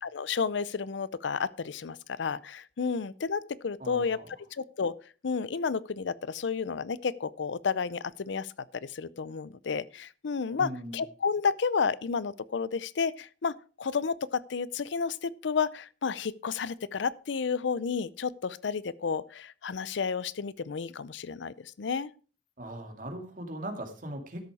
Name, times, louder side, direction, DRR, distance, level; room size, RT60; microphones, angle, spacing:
voice 1, 0.0-4.2 4.5-4.9 5.2-22.1, left 5 dB, 75° left, 0.5 m, -31 dB
voice 2, 3.8-4.3 10.6-11.0 22.6-24.4, right 1 dB, 45° right, 2.3 m, -39 dB
13.0 x 6.9 x 4.8 m
head